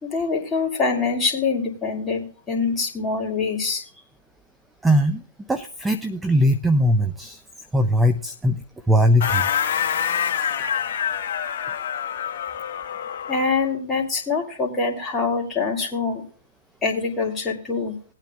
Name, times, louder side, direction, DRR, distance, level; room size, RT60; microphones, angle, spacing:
voice 1, 0.0-3.8 13.3-16.2 16.8-18.0, left 4 dB, 15° left, 0 dB, 2.7 m, -24 dB
voice 2, 4.8-5.2 5.5-7.4 7.7-9.5, equal, 5° right, 9 dB, 0.5 m, -20 dB
sound 1, 9.2-13.6, left 8 dB, 50° left, 1.4 m, -26 dB
19.0 x 9.0 x 2.2 m, 0.43 s
hypercardioid pair, 130°, 0 cm